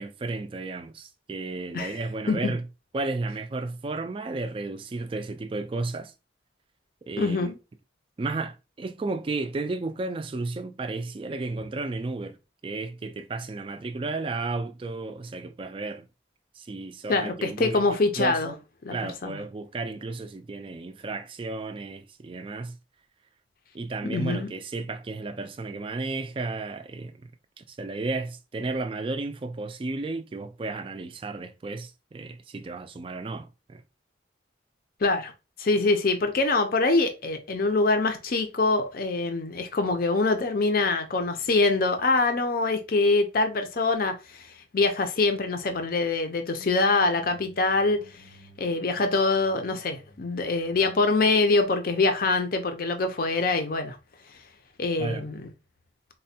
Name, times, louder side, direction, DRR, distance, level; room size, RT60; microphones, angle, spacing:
voice 1, 0.0-2.6 2.9-6.1 7.1-7.5 8.2-12.4 12.6-16.1 16.6-17.8 18.2-18.6 18.9-22.8 23.7-27.3 27.6-33.8 55.0-55.2, right 3 dB, 30° right, 0.3 m, -33 dB
voice 2, 7.2-7.6 17.1-18.5 18.8-19.0 19.2-19.4 24.0-24.5 35.0-35.3 35.6-48.3 48.6-54.0 54.8-55.5, left 3 dB, 50° left, 0.5 m, -24 dB
sound 1, 46.3-52.2, left 1 dB, 85° left, 0.8 m, -53 dB
4.1 x 2.2 x 2.7 m
head